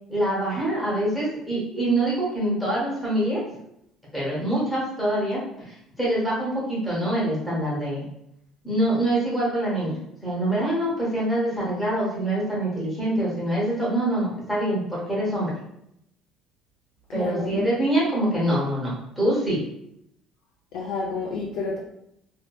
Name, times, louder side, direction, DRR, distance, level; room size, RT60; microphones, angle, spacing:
voice 1, 0.1-3.4 4.1-8.0 8.6-10.0 10.2-15.5 17.1-19.6, right 1 dB, ahead, -7 dB, 0.8 m, -25 dB
voice 2, 17.1-17.7 20.7-21.8, left 3 dB, 70° left, -2 dB, 0.3 m, -30 dB
2.6 x 2.2 x 2.2 m, 0.77 s
cardioid pair, 170°, 0 cm